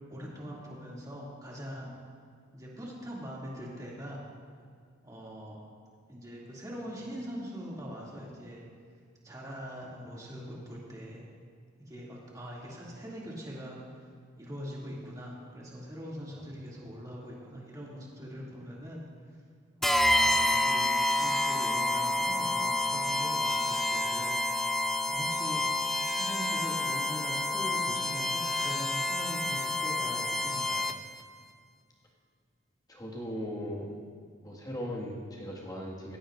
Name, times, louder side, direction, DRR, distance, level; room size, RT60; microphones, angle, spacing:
voice 1, 0.1-2.0 2.5-4.3 5.0-5.6 6.1-8.6 9.2-11.2 11.8-14.1 14.4-19.4 19.8-20.9 21.1-24.3 25.1-25.6 26.1-30.9, equal, 20° right, -5 dB, 2.5 m, -42 dB
sound 1, 19.8-31.2, left 2 dB, ahead, 0.3 m, -29 dB
voice 2, 32.9-33.9 34.4-36.2, equal, 20° left, -4 dB, 1.8 m, -38 dB
16.0 x 15.5 x 2.6 m, 2.1 s
head